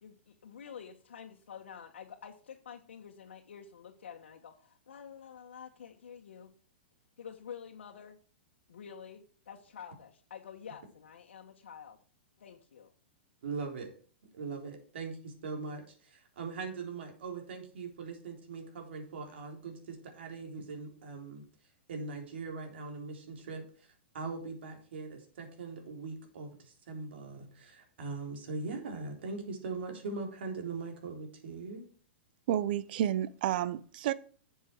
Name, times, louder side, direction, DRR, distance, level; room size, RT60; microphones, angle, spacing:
voice 1, 0.0-6.5 7.2-8.2 8.7-12.0 12.4-12.9, left 7 dB, 85° left, 1.5 m, -49 dB
voice 2, 13.4-13.9 14.3-21.4 21.9-23.9 24.1-31.8, right 4 dB, 70° right, 3.7 m, -41 dB
voice 3, 32.5-34.1, right 11 dB, 55° right, 0.8 m, -30 dB
10.5 x 7.3 x 4.6 m
hypercardioid pair, 145°, 6 cm